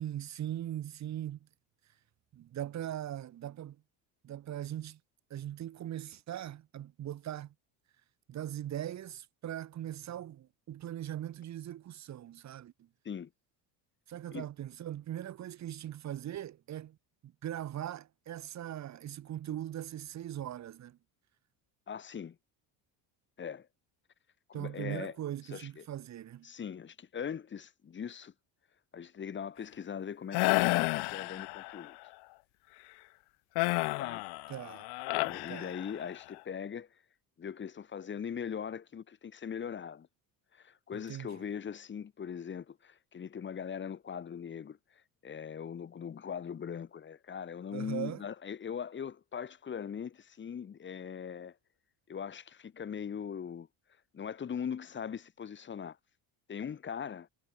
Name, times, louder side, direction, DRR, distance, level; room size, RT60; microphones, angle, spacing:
voice 1, 0.0-1.5 2.3-3.8 4.2-5.0 5.3-7.5 8.3-12.7 14.1-17.0 17.2-21.0 24.5-26.5 34.5-34.9 35.5-35.7 40.9-41.4 47.7-48.2, right 11 dB, 40° right, 3.8 m, -40 dB
voice 2, 21.9-22.4 23.4-23.7 24.5-25.1 25.5-25.8 26.4-28.3 28.9-32.1 34.0-34.2 35.1-36.9 37.4-40.1 40.5-44.8 45.2-51.6 52.1-53.7 54.1-56.0 56.5-57.3, left 7 dB, 25° left, 4.1 m, -40 dB
sound 1, 30.3-31.9 33.6-36.2, left 26 dB, 70° left, 0.8 m, -31 dB
cardioid pair, 160°, 41 cm